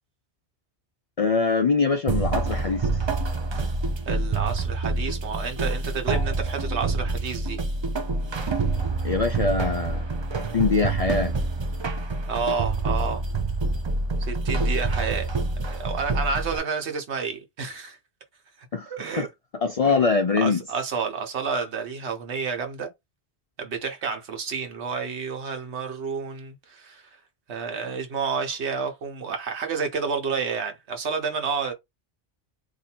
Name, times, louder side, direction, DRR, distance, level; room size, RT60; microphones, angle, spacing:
voice 1, 1.2-2.9 9.0-10.1 10.3-11.3 18.7-19.3 19.5-20.6, left 4 dB, 55° left, 0.4 m, -23 dB
sound 1, 2.1-16.6, right 3 dB, 40° right, 0.4 m, -27 dB
voice 2, 4.1-7.6 12.3-13.2 14.2-15.3 15.6-18.0 18.9-19.3 19.8-19.9 20.4-22.9 23.6-27.1 27.5-31.7, right 5 dB, 85° right, 1.3 m, -30 dB
2.7 x 2.6 x 4.3 m
omnidirectional pair, 1.1 m